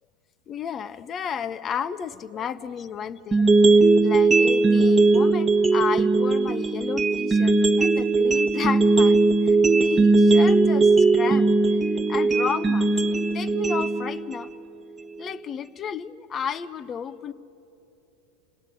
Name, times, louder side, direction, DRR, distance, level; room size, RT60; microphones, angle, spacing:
voice 1, 0.5-11.5 11.9-14.5 15.2-17.3, left 7 dB, 30° left, 14 dB, 0.8 m, -32 dB
sound 1, 3.3-15.3, right 3 dB, 10° right, 1.4 m, -19 dB
27.5 x 18.5 x 9.8 m, 3.0 s
supercardioid pair, 130°, 0 cm